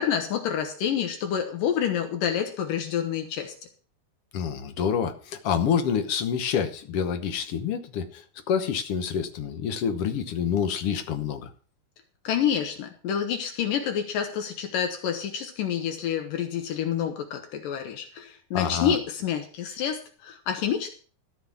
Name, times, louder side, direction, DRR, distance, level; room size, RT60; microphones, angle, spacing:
voice 1, 0.0-3.5 12.2-20.9, left 8 dB, 80° left, 2.9 m, -28 dB
voice 2, 4.3-11.5 18.5-19.0, left 7 dB, 65° left, 1.5 m, -27 dB
13.5 x 5.8 x 7.1 m
omnidirectional pair, 3.8 m